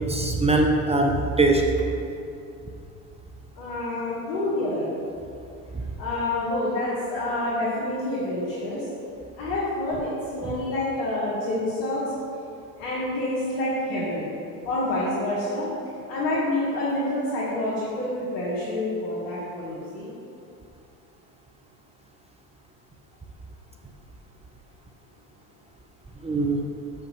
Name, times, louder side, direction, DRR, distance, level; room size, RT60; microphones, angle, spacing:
voice 1, 0.0-1.7 26.2-26.7, right 2 dB, 15° right, 2 dB, 0.6 m, -22 dB
voice 2, 3.6-4.9 6.0-8.9 9.4-12.0 12.8-14.3 14.6-15.7 16.1-20.1, left 1 dB, 80° left, -7 dB, 1.9 m, -27 dB
7.0 x 5.8 x 5.7 m, 2.7 s
hypercardioid pair, 90°, 46 cm